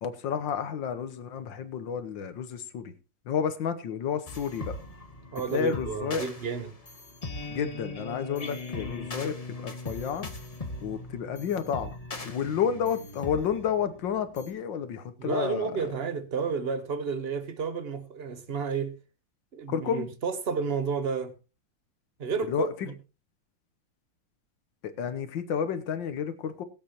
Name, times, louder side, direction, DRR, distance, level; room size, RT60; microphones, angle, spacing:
voice 1, 0.0-2.9 3.3-4.8 5.5-6.3 7.5-9.4 9.6-10.3 10.8-11.9 12.2-15.7 19.7-20.1 22.5-22.7 24.8-26.6, left 7 dB, 65° left, 1.6 m, -31 dB
sound 1, 4.3-14.5, left 2 dB, 25° left, 0.9 m, -40 dB
voice 2, 5.3-6.7 15.2-18.9 19.5-21.3 22.2-22.9, right 5 dB, 40° right, 1.0 m, -31 dB
21.0 x 7.8 x 3.0 m
omnidirectional pair, 2.3 m